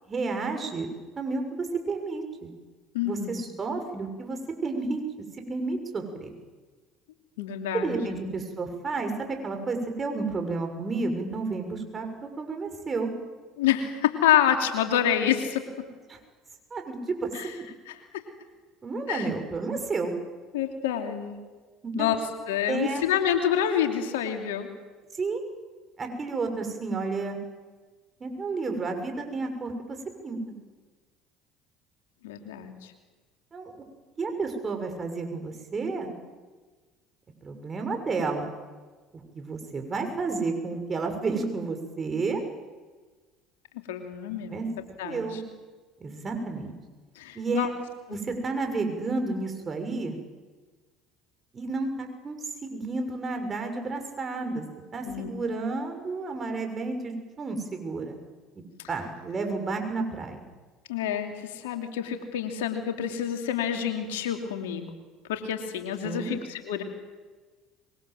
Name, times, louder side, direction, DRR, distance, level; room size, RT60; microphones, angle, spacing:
voice 1, 0.1-0.9 1.2-2.5 3.0-5.0 5.4-6.3 7.7-12.1 12.4-13.1 16.1-16.2 16.7-17.3 18.8-20.1 21.8-22.1 22.7-23.0 25.2-25.4 26.0-27.4 28.2-30.0 30.2-30.4 33.5-33.7 34.2-36.1 37.4-38.5 39.1-42.4 44.5-44.7 45.0-45.4 46.0-46.7 47.3-47.7 48.1-50.2 51.5-54.6 54.9-58.2 58.9-60.4 66.0-66.3, right 3 dB, 30° right, 5 dB, 6.7 m, -31 dB
voice 2, 2.9-3.4 7.4-8.2 13.6-15.7 17.3-17.5 17.9-18.2 19.1-19.3 20.5-21.4 22.0-24.7 32.2-32.9 43.7-44.6 45.0-45.4 47.1-47.7 48.1-48.2 55.0-55.3 60.9-65.0 65.3-66.8, left 10 dB, 80° left, 5 dB, 2.9 m, -28 dB
25.0 x 23.0 x 7.9 m, 1.3 s
hypercardioid pair, 65°, 0 cm